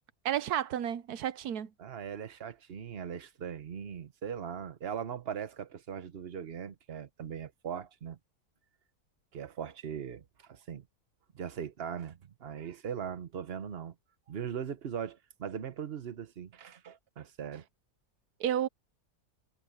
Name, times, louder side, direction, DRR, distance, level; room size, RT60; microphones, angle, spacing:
voice 1, 0.2-1.7 18.4-18.7, right 10 dB, 85° right, 1.3 m, -31 dB
voice 2, 1.8-8.2 9.3-10.9 11.3-13.9 14.3-17.6, right 8 dB, 45° right, 1.1 m, -40 dB
omnidirectional pair, 1.6 m